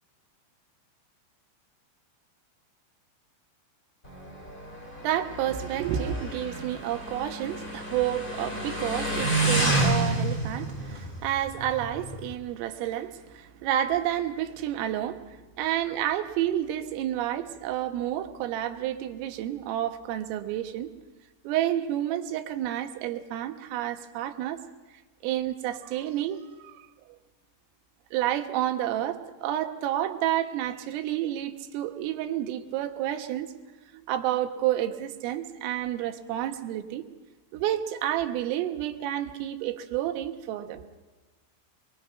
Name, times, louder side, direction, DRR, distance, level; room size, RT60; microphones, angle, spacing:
Motorcycle, 4.0-12.3, right 2 dB, 15° left, 1.7 m, -30 dB
voice 1, 5.0-20.9 21.5-24.6 25.2-26.9 28.1-33.5 33.9-37.0 37.5-40.9, right 12 dB, 85° right, 6 dB, 4.0 m, -30 dB
27.0 x 21.5 x 5.7 m, 1.3 s
omnidirectional pair, 5.8 m